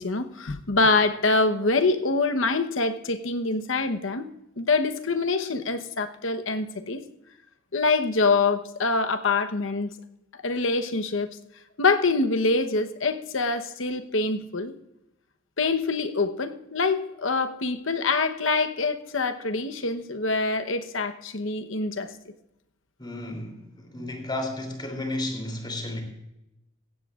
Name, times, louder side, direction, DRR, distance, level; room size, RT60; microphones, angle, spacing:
voice 1, 0.0-4.2 4.6-7.0 7.7-9.9 10.4-11.3 11.8-14.7 15.6-22.1, left 3 dB, 65° left, 8 dB, 1.0 m, -25 dB
voice 2, 23.0-26.0, left 1 dB, 20° left, 3 dB, 3.1 m, -33 dB
16.5 x 15.5 x 2.5 m, 0.88 s
head